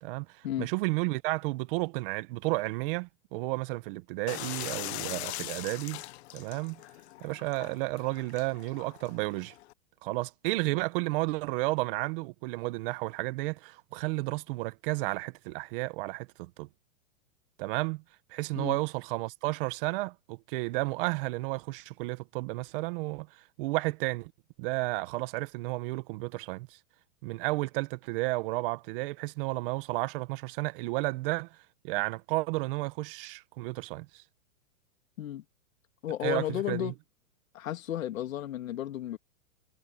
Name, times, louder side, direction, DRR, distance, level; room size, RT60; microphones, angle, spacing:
voice 1, 0.0-6.0 6.3-6.8 7.2-9.5 10.0-16.7 17.6-18.0 18.3-23.3 23.6-24.3 24.6-26.8 27.2-31.5 31.8-34.2 36.2-36.9, right 22 dB, 40° right, 1.3 m, -32 dB
sound 1, 4.3-9.7, left 17 dB, 55° left, 1.0 m, -41 dB
voice 2, 36.0-36.9 37.5-39.2, left 12 dB, 75° left, 2.9 m, -33 dB
hypercardioid pair, 150°, 41 cm